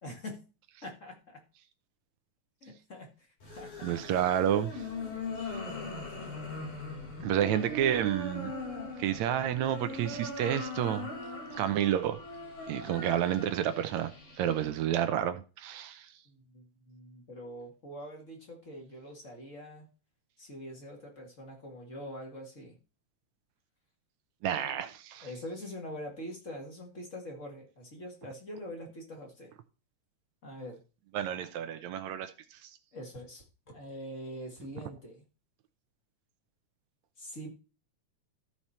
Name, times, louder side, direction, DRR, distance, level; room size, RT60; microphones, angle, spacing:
voice 1, 0.0-0.4 0.8-1.4 2.6-3.3 3.6-3.9 16.3-19.9 20.4-22.8 24.5-24.8 25.2-29.5 30.4-30.8 32.9-35.2 37.2-37.5, equal, 30° left, 1 dB, 2.1 m, -44 dB
sound 1, 3.4-14.6, left 2 dB, 80° left, 6.1 m, -40 dB
voice 2, 3.8-4.8 7.2-8.5 9.0-11.1 11.5-12.2 12.7-14.1 14.4-16.1 24.4-25.3 31.1-32.7, right 10 dB, 75° right, 10 dB, 2.0 m, -30 dB
14.0 x 4.7 x 4.3 m, 0.33 s
omnidirectional pair, 3.4 m